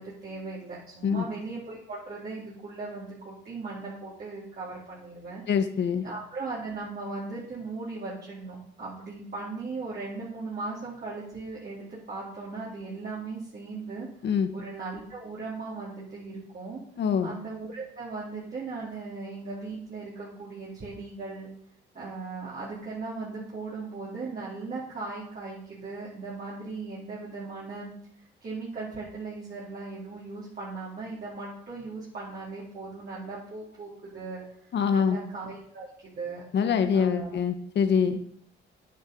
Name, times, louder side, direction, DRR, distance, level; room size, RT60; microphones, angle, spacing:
voice 1, 0.0-16.8 17.2-21.5 21.9-27.9 28.2-36.4 36.9-37.4, right 3 dB, 50° right, -8 dB, 4.1 m, -38 dB
voice 2, 5.5-6.1 14.2-14.5 17.0-17.3 34.7-35.2 36.5-38.2, left 7 dB, 60° left, 8 dB, 1.4 m, -24 dB
10.0 x 9.7 x 5.5 m, 0.66 s
cardioid pair, 90°, 20 cm